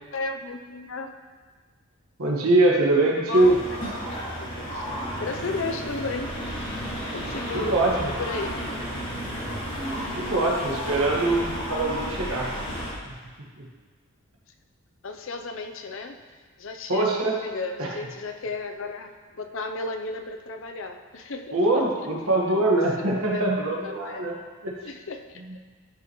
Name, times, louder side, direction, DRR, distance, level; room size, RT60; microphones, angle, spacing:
voice 1, 0.1-1.2 3.1-4.9 5.2-6.3 7.1-8.6 15.0-16.2 16.6-17.1 17.4-21.6 22.0-22.1 22.4-22.6 23.3-23.5 23.8-24.3 24.8-25.4, left 3 dB, 60° left, 6 dB, 0.6 m, -34 dB
voice 2, 2.2-3.5 7.5-8.1 10.2-12.5 13.0-13.1 13.6-13.7 16.9-17.4 17.8-17.9 21.5-24.3 24.6-24.7, right 2 dB, 75° right, -2 dB, 1.5 m, -23 dB
sound 1, 3.3-12.9, equal, 40° left, 2.4 m, -32 dB
12.0 x 5.8 x 3.1 m, 1.5 s
head